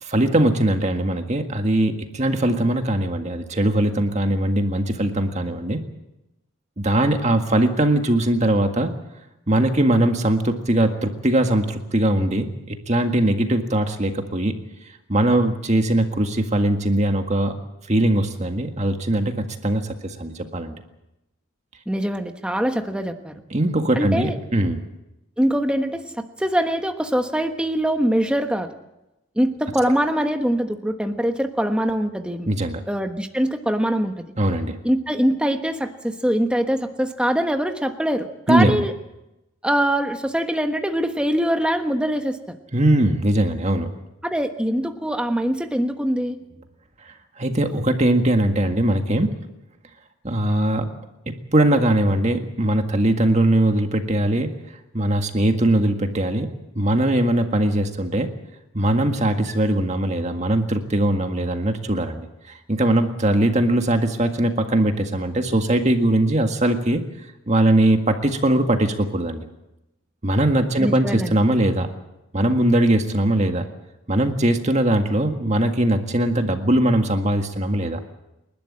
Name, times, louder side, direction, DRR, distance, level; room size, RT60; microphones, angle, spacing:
voice 1, 0.0-5.8 6.8-8.9 9.5-14.5 15.1-17.6 17.9-20.8 23.5-24.8 32.5-32.8 34.4-34.8 38.5-38.8 42.7-43.9 47.4-49.3 50.2-50.9 51.5-54.5 54.9-56.5 56.8-58.3 58.7-67.0 67.5-69.5 70.2-71.9 72.3-73.7 74.1-78.0, right 1 dB, 30° right, 5 dB, 1.8 m, -20 dB
voice 2, 21.9-23.3 24.0-24.4 25.4-28.7 29.4-32.5 32.9-34.1 34.8-38.9 39.6-42.5 44.2-46.4 70.8-71.3, equal, 5° right, 6 dB, 1.2 m, -23 dB
28.5 x 12.0 x 8.7 m, 0.94 s
head